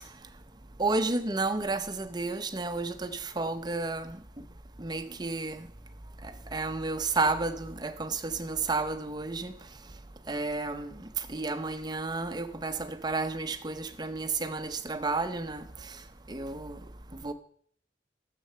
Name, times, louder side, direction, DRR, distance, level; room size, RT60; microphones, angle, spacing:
voice 1, 0.8-4.2 4.8-5.6 6.5-9.5 10.3-10.9 11.3-15.6 16.3-16.8 17.2-17.3, right 3 dB, 25° right, 0.8 m, -31 dB
11.5 x 7.6 x 6.7 m
head